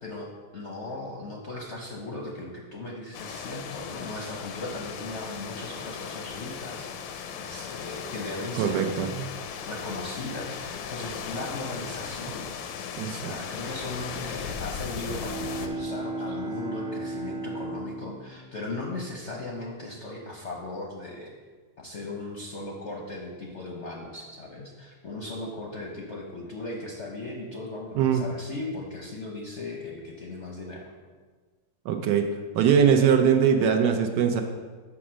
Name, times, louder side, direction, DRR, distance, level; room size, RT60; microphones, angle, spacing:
voice 1, 0.0-6.9 7.4-9.0 9.6-12.4 13.2-21.3 21.8-30.9, left 2 dB, 55° left, -1 dB, 0.8 m, -37 dB
sound 1, 3.1-15.7, left 7 dB, 85° left, 1.3 m, -37 dB
voice 2, 8.6-9.3 13.0-13.3 27.9-28.2 31.8-32.2 32.5-34.4, right 7 dB, 70° right, 5 dB, 1.1 m, -22 dB
Bowed string instrument, 15.1-19.6, right 2 dB, 45° right, 1.0 m, -36 dB
6.0 x 5.0 x 6.2 m, 1.5 s
omnidirectional pair, 2.0 m